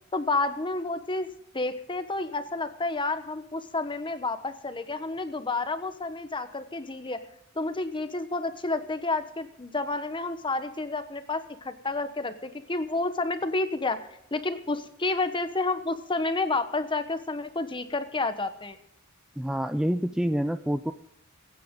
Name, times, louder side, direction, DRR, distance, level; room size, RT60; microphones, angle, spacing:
voice 1, 0.1-1.3 1.5-7.2 7.5-18.8, left 3 dB, 25° left, 10 dB, 1.1 m, -30 dB
voice 2, 19.4-20.9, equal, 5° right, 9 dB, 0.4 m, -27 dB
23.5 x 9.4 x 3.8 m, 0.76 s
head